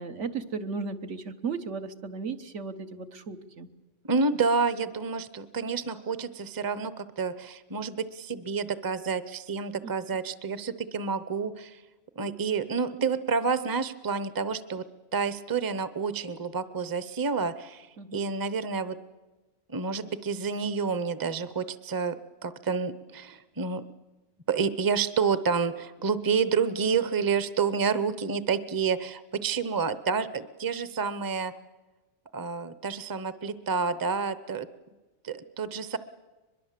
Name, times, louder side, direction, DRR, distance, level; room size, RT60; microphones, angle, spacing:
voice 1, 0.0-3.7 9.8-9.9 18.0-18.3, right 5 dB, 75° right, 7 dB, 1.6 m, -35 dB
voice 2, 4.1-11.8 12.2-14.8 15.1-17.9 18.1-19.0 19.7-23.8 24.5-31.5 32.3-34.7 35.2-36.0, right 5 dB, 20° right, 14 dB, 0.7 m, -29 dB
23.0 x 22.0 x 7.5 m, 1.2 s
omnidirectional pair, 1.3 m